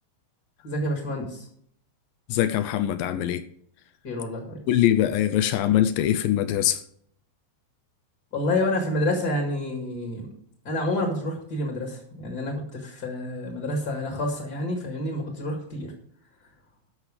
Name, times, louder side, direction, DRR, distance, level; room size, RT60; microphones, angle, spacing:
voice 1, 0.6-1.5 4.0-4.6 8.3-10.3 10.6-15.9, left 1 dB, 35° left, 1 dB, 1.7 m, -28 dB
voice 2, 2.3-3.4 4.7-6.8, left 12 dB, 80° left, 11 dB, 2.2 m, -22 dB
13.0 x 5.8 x 4.9 m, 0.65 s
omnidirectional pair, 4.4 m